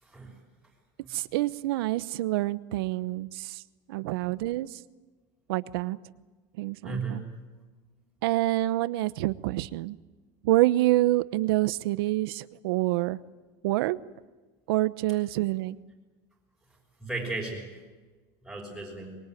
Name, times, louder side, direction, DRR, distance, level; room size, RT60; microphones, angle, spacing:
voice 1, 0.0-0.3 6.8-7.2 17.0-17.6 18.4-19.1, right 3 dB, ahead, -3 dB, 6.0 m, -34 dB
voice 2, 1.1-3.6 3.9-4.7 5.5-6.0 6.6-7.2 8.2-10.0 10.4-13.2 13.6-14.0 14.7-15.8, right 17 dB, 90° right, 16 dB, 1.0 m, -27 dB
24.5 x 22.0 x 9.3 m, 1.3 s
cardioid pair, 160°, 12 cm